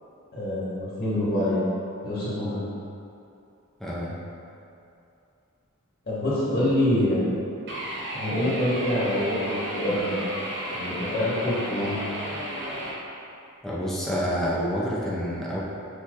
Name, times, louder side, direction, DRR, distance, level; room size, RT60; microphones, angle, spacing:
voice 1, 0.3-1.6 2.0-2.6 6.1-7.2 8.1-10.2 10.7-12.0, left 1 dB, 45° left, -9 dB, 1.4 m, -25 dB
voice 2, 3.8-4.2 13.6-15.6, equal, ahead, -7 dB, 0.5 m, -28 dB
sound 1, 7.7-12.9, right 1 dB, 55° right, 0.9 m, -33 dB
6.4 x 2.9 x 2.5 m, 2.6 s
head